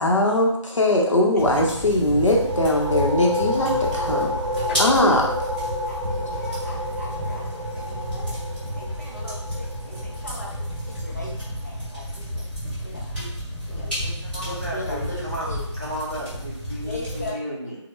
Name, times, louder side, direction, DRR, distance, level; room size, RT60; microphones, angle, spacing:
voice 1, 0.0-4.3 4.8-5.3, left 1 dB, 80° left, 0 dB, 0.6 m, -20 dB
sound 1, 1.4-17.3, equal, 20° left, 0.9 m, -31 dB
sound 2, 2.1-11.5, left 1 dB, 90° right, 0.6 m, -30 dB
voice 2, 3.9-4.9 5.9-8.3 8.8-10.5 10.8-12.4 12.8-13.3 13.7-15.6 16.8-17.4, left 2 dB, 35° left, -4 dB, 0.5 m, -39 dB
voice 3, 14.3-15.5 15.8-17.8, equal, 30° right, -6 dB, 0.5 m, -33 dB
2.2 x 2.0 x 3.0 m, 0.76 s
figure-of-eight pair, 180°, 16 cm